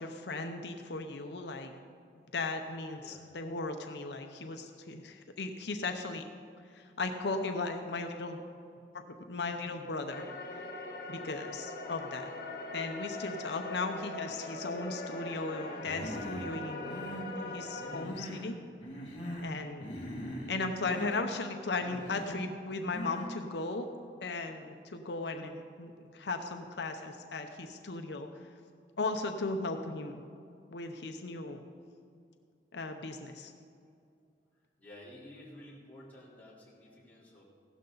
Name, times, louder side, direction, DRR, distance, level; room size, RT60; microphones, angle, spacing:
voice 1, 0.0-1.7 2.3-6.3 6.7-8.4 8.9-10.2 11.1-12.3 12.7-18.6 19.4-19.9 20.5-23.9 24.2-28.5 29.0-30.2 30.7-31.6 32.7-33.5, left 3 dB, 75° left, 5 dB, 0.7 m, -37 dB
sound 1, 10.1-18.1, left 2 dB, 50° left, 1.6 m, -41 dB
Human voice, 15.8-16.5 16.8-17.3 17.8-18.5 18.8-19.6 19.8-20.5 20.8-21.2 21.8-22.4 22.9-23.3, equal, 30° left, 2.5 m, -41 dB
voice 2, 34.8-37.4, left 1 dB, 10° left, -9 dB, 3.7 m, -52 dB
16.0 x 12.5 x 4.0 m, 2.4 s
head